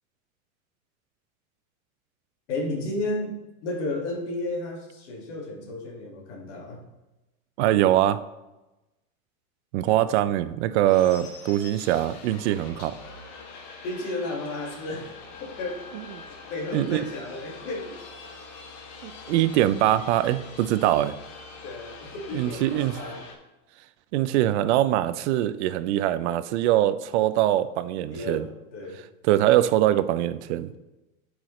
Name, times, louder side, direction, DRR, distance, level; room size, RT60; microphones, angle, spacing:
voice 1, 2.5-3.3 3.6-6.8 13.8-15.1 15.4-16.0 16.3-18.0 21.6-23.2 28.1-29.0, left 2 dB, 55° left, 1 dB, 2.0 m, -33 dB
voice 2, 7.6-8.2 9.7-13.0 16.7-17.0 19.0-21.1 22.3-22.9 24.1-28.5 29.2-30.7, right 13 dB, 55° right, 13 dB, 0.5 m, -23 dB
sound 1, 10.8-23.4, left 4 dB, 40° left, 1.2 m, -44 dB
10.5 x 4.8 x 3.1 m, 1.0 s
supercardioid pair, 140°, 42 cm